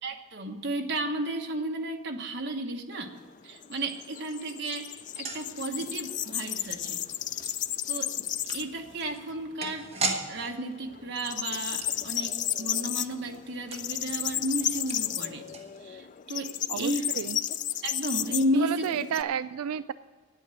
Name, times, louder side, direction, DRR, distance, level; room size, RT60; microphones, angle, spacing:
voice 1, 0.0-3.1 3.4-7.0 7.9-8.1 8.5-9.9 10.3-15.5 15.8-17.0 17.8-18.8, right 1 dB, 50° right, 3 dB, 1.2 m, -33 dB
sound 1, 2.9-8.8 9.2-9.3 9.7-10.5 10.7-19.2, left 11 dB, 35° left, 0.3 m, -33 dB
sound 2, 5.0-16.2 16.5-16.6 16.9-17.0, right 3 dB, 30° right, 1.2 m, -40 dB
voice 2, 16.7-17.4 18.5-19.9, right 8 dB, 90° right, 14 dB, 0.3 m, -31 dB
9.4 x 8.4 x 8.2 m, 1.5 s
head